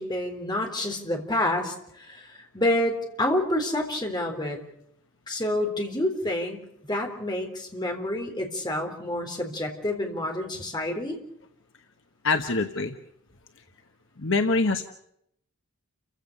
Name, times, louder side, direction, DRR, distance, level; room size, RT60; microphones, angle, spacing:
voice 1, 0.0-4.6 5.3-11.2, left 1 dB, 20° left, 2 dB, 3.9 m, -28 dB
voice 2, 12.2-12.9 14.2-14.8, left 3 dB, 55° left, 6 dB, 1.2 m, -24 dB
29.5 x 16.0 x 6.7 m, 0.75 s
head